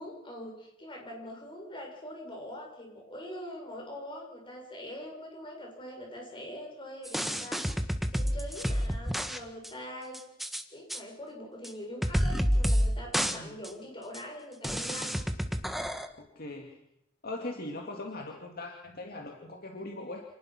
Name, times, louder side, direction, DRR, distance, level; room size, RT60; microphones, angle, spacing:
voice 1, 0.0-7.6 8.1-10.2 10.7-15.2, equal, 25° left, 0 dB, 7.1 m, -43 dB
sound 1, 7.1-9.4 9.6-9.7 10.1-10.6 10.9-11.0 11.6-11.7 12.0-12.9 13.1-13.4 13.6-13.7 14.1-14.2 14.6-16.1, equal, ahead, 1.4 m, -29 dB
voice 2, 13.2-13.6 16.2-16.8 17.2-20.2, left 2 dB, 50° left, 1 dB, 2.3 m, -40 dB
27.0 x 19.0 x 6.0 m, 0.82 s
head